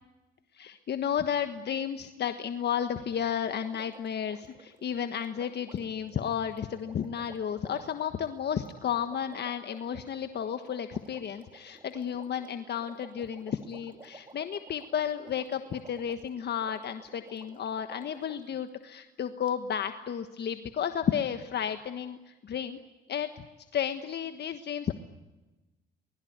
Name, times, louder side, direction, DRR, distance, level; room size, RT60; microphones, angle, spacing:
voice 1, 0.5-22.8 23.1-23.5 23.7-24.9, left 8 dB, 55° left, 8 dB, 1.4 m, -32 dB
Water, 3.5-18.6 19.5-19.6, right 3 dB, 25° right, 2.7 m, -54 dB
24.0 x 21.5 x 9.5 m, 1.1 s
cardioid pair, 90°, 20 cm